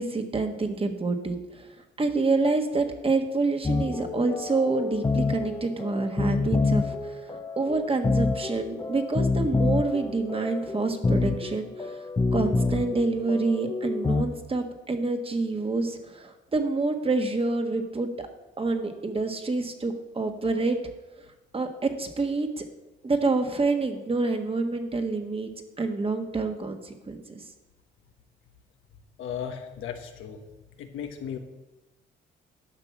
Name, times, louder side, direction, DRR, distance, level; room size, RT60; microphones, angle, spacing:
voice 1, 0.0-18.3 18.6-20.8 21.5-22.6 23.0-25.5 25.8-27.4, right 3 dB, 30° right, 6 dB, 1.5 m, -27 dB
sound 1, 3.6-14.2, left 3 dB, 20° left, 0.8 m, -27 dB
voice 2, 29.2-30.4 30.8-31.4, left 8 dB, 85° left, 5 dB, 1.4 m, -35 dB
11.5 x 5.8 x 7.3 m, 1.1 s
cardioid pair, 90°, 20 cm